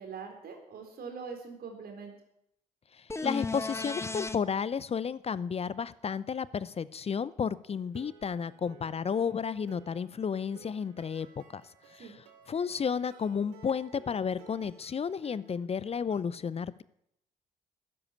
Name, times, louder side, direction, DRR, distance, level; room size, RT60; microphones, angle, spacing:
voice 1, 0.0-2.1 12.0-12.1, right 5 dB, 55° right, 4 dB, 3.8 m, -42 dB
voice 2, 2.9-11.6 11.9-16.8, left 6 dB, 35° left, 19 dB, 0.6 m, -32 dB
sound 1, 3.1-4.4 8.2-8.3, left 3 dB, 15° left, 1.2 m, -35 dB
sound 2, 7.7-16.2, right 6 dB, 80° right, 1.6 m, -56 dB
13.0 x 10.0 x 8.4 m, 0.75 s
hypercardioid pair, 45°, 18 cm